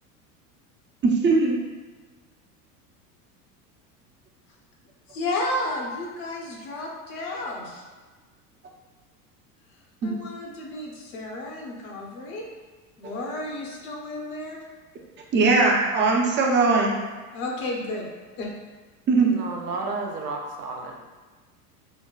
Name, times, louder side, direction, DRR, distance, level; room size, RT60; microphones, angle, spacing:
voice 1, 1.0-1.6 10.0-10.1 15.3-17.0 19.1-19.3, right 3 dB, 25° right, -1 dB, 0.5 m, -20 dB
voice 2, 5.1-7.8 10.0-12.5 13.0-14.6 17.3-18.1 18.4-18.5, left 2 dB, 60° left, -1 dB, 1.0 m, -32 dB
voice 3, 19.2-20.9, right 3 dB, 85° right, 0 dB, 0.7 m, -32 dB
5.1 x 2.1 x 2.4 m, 1.3 s
hypercardioid pair, 80°, 47 cm